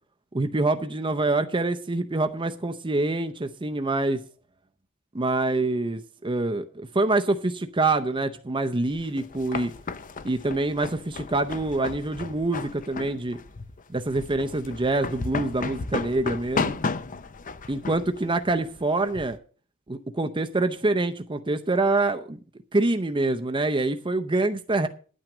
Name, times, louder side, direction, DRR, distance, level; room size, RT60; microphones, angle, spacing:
voice 1, 0.3-4.3 5.1-9.7 10.2-13.4 13.9-16.8 17.7-19.4 19.9-22.4 22.7-24.9, right 2 dB, 20° right, 7 dB, 0.6 m, -25 dB
sound 1, 8.9-19.4, left 4 dB, 35° left, 0.6 m, -34 dB
10.5 x 9.0 x 6.1 m, 0.41 s
head